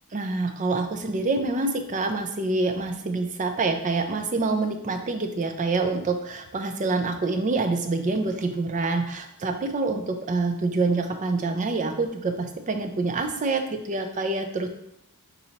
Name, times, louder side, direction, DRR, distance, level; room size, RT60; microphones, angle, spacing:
voice 1, 0.1-14.7, right 3 dB, 35° right, 7 dB, 0.4 m, -26 dB
4.3 x 4.0 x 2.8 m, 0.76 s
head